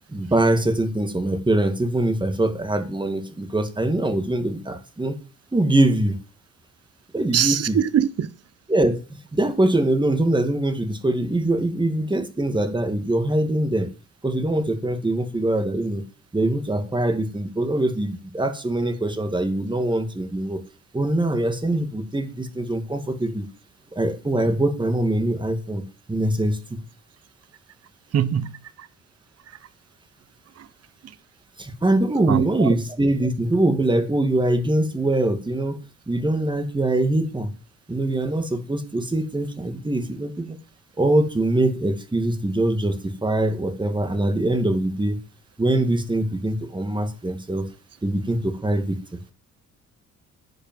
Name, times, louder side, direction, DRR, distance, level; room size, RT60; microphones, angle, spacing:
voice 1, 0.1-5.2 5.5-6.2 7.1-7.8 8.7-9.0 9.3-13.9 14.2-16.0 16.3-20.6 20.9-23.5 23.9-25.8 26.1-26.8 31.6-35.8 36.1-37.5 37.9-40.6 41.0-45.2 45.6-47.7 48.0-49.0, right 1 dB, 15° right, 2.4 m, -23 dB
voice 2, 7.3-8.3 28.1-28.6 30.6-30.7 32.3-32.7, right 9 dB, 55° right, 1.1 m, -22 dB
10.5 x 6.9 x 7.7 m
cardioid pair, 90°, 30 cm